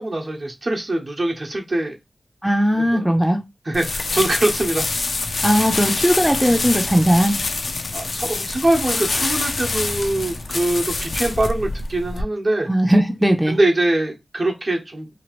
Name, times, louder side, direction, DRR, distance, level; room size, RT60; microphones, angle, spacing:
voice 1, 0.0-2.0 2.7-3.1 3.6-4.9 7.9-12.7 13.5-15.1, right 1 dB, 55° right, 0.9 m, -23 dB
voice 2, 2.4-3.4 5.4-7.4 12.7-13.6, equal, ahead, 0.4 m, -18 dB
sound 1, 3.7-12.2, left 3 dB, 80° left, 0.4 m, -25 dB
2.9 x 2.4 x 3.0 m
cardioid pair, 50°, 0 cm